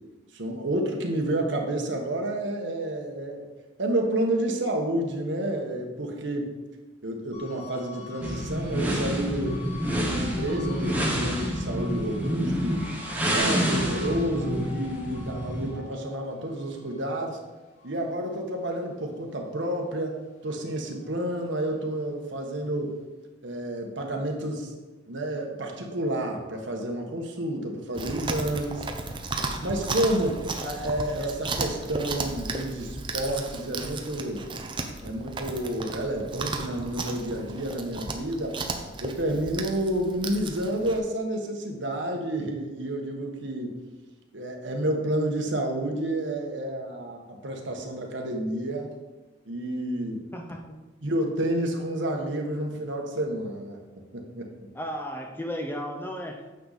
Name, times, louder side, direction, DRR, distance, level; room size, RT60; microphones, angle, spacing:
voice 1, 0.3-3.5 3.8-6.5 7.0-9.6 9.9-12.8 13.2-17.4 17.8-23.0 23.4-24.7 25.1-28.9 29.6-34.4 35.0-38.6 39.0-43.8 44.3-48.9 49.4-50.2 51.0-53.8 54.1-54.7, right 1 dB, 65° right, 2 dB, 1.4 m, -30 dB
sound 1, 7.3-19.9 20.3-22.0, left 4 dB, 35° left, 1.7 m, -48 dB
sound 2, 8.2-15.8, equal, 10° right, 1.2 m, -28 dB
Chewing mastication, 27.9-41.0, right 3 dB, 25° right, 0.7 m, -34 dB
voice 2, 50.3-50.8 54.7-56.5, equal, 10° left, 3 dB, 0.7 m, -34 dB
9.2 x 6.6 x 4.2 m, 1.2 s
head